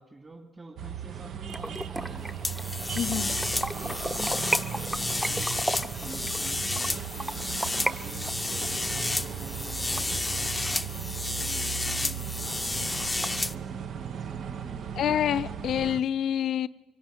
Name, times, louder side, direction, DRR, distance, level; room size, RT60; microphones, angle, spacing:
voice 1, 0.0-2.4 3.1-3.5 3.8-7.4 7.7-12.9 13.4-14.9, right 2 dB, 30° right, 2.4 m, -48 dB
sound 1, 0.8-16.0, right 8 dB, 70° right, 0.9 m, -37 dB
sound 2, 1.5-7.9 8.3-10.8 11.2-11.3 11.7-11.8 12.1-12.2 12.5-13.3, right 1 dB, 10° right, 1.0 m, -34 dB
sound 3, 2.4-13.5, left 2 dB, 15° left, 0.7 m, -31 dB
voice 2, 2.9-3.4 14.9-16.7, left 10 dB, 70° left, 0.6 m, -27 dB
24.0 x 17.5 x 9.1 m
cardioid pair, 90°, 0 cm